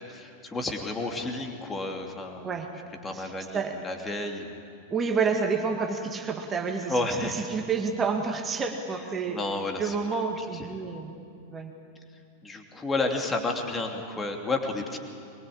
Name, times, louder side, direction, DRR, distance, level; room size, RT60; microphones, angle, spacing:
voice 1, 0.0-2.5 3.0-4.5 6.9-7.4 9.3-10.0 10.4-10.5 12.4-15.0, left 2 dB, 15° left, 3 dB, 2.9 m, -31 dB
voice 2, 3.1-3.8 4.9-6.9 7.2-9.4 9.8-11.2 11.5-11.7, right 5 dB, 20° right, 3 dB, 2.1 m, -29 dB
23.5 x 22.5 x 8.7 m, 2.4 s
figure-of-eight pair, 90°, 0 cm